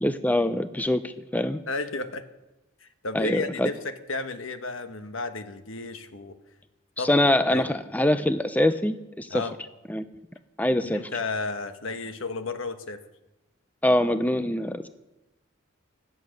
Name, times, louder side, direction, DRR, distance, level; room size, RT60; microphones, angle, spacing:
voice 1, 0.0-1.6 3.1-3.7 7.0-9.4 9.9-10.0 10.6-11.0 13.8-14.9, left 1 dB, 10° left, 11 dB, 0.5 m, -24 dB
voice 2, 1.7-2.2 2.8-6.4 7.0-7.1 7.5-7.7 9.3-9.5 10.8-13.0, left 3 dB, 80° left, 9 dB, 1.3 m, -33 dB
17.0 x 12.5 x 6.5 m, 0.99 s
head